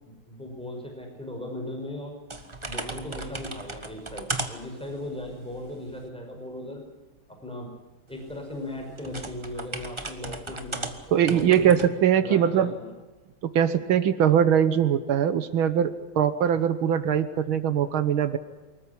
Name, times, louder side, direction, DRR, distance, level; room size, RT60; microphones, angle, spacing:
voice 1, 0.3-2.1 2.7-6.8 7.4-7.7 8.1-11.7 12.2-12.9, left 1 dB, ahead, 2 dB, 5.3 m, -37 dB
sound 1, 2.3-6.1 8.1-11.9, right 2 dB, 15° right, 1.4 m, -37 dB
voice 2, 11.1-12.7 13.6-18.4, right 9 dB, 80° right, 12 dB, 1.9 m, -22 dB
24.5 x 14.5 x 10.0 m, 1.2 s
omnidirectional pair, 2.2 m